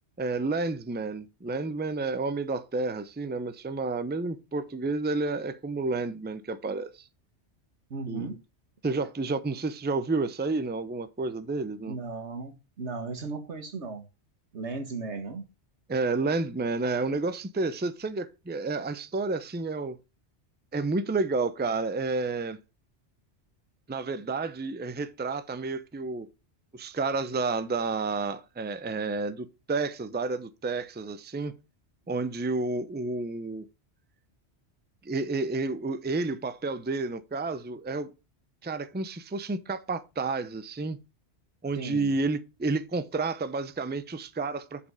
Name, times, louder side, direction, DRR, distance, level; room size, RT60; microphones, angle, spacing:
voice 1, 0.2-7.0 8.1-8.4 8.8-12.0 15.9-20.0 20.7-22.6 23.9-26.3 26.7-31.5 32.1-33.7 35.0-38.1 38.6-41.0 41.6-44.9, right 3 dB, 10° right, 0.5 m, -30 dB
voice 2, 7.9-8.4 8.9-9.1 11.9-14.0 14.5-15.5 41.7-42.1, right 3 dB, 85° right, 1.9 m, -36 dB
7.0 x 5.4 x 4.8 m
omnidirectional pair, 1.1 m